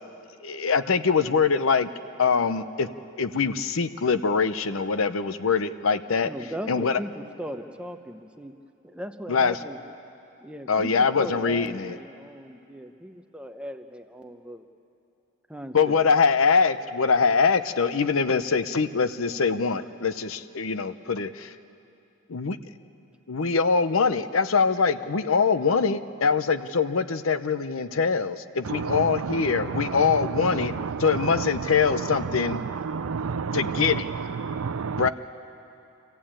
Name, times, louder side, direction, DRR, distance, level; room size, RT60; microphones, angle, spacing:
voice 1, 0.4-1.9 2.2-2.9 3.2-6.3 6.7-7.0 9.3-9.6 10.7-12.0 15.7-21.5 22.3-22.6 23.3-30.7 31.0-32.6 33.5-34.1 35.0-35.1, left 5 dB, 75° left, 11 dB, 0.7 m, -23 dB
voice 2, 6.2-8.5 8.8-9.8 10.4-14.7 15.5-16.0, equal, 5° right, 6 dB, 0.8 m, -38 dB
voice 3, 28.7-35.1, right 5 dB, 85° right, 15 dB, 0.5 m, -31 dB
26.5 x 15.0 x 8.8 m, 2.7 s
head